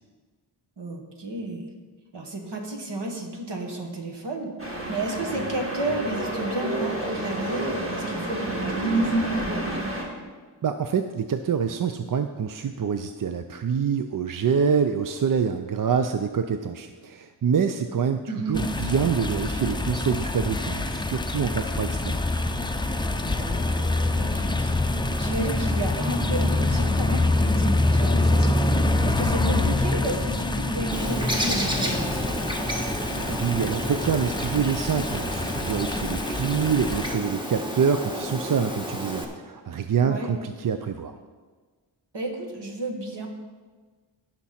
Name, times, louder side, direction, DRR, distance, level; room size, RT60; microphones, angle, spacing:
voice 1, 0.8-1.7 2.1-9.9 18.3-18.6 23.4-24.8 25.2-32.5 40.0-40.3 42.1-43.3, right 2 dB, 60° right, 2 dB, 1.8 m, -32 dB
sound 1, 4.6-10.0, right 1 dB, 30° right, 2.3 m, -28 dB
voice 2, 10.6-18.2 18.5-22.2 33.2-41.2, right 6 dB, 45° right, 8 dB, 0.5 m, -26 dB
sound 2, 18.5-37.1, left 2 dB, 10° left, 0.6 m, -25 dB
Bird, 30.9-39.2, equal, 10° right, 1.4 m, -31 dB
16.0 x 6.0 x 4.3 m, 1.4 s
wide cardioid pair, 80°, 46 cm